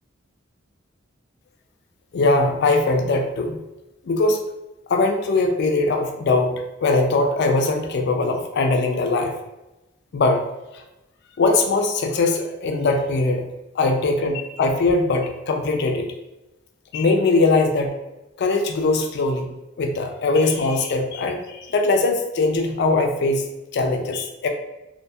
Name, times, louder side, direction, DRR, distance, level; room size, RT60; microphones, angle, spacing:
voice 1, 2.1-3.6 4.0-4.4 4.9-9.3 10.1-10.4 10.7-10.8 11.4-13.5 13.7-16.1 16.9-17.9 18.4-19.5 19.8-23.5 23.7-24.5, left 3 dB, 55° left, 4 dB, 0.4 m, -21 dB
2.4 x 2.3 x 2.6 m, 0.98 s
head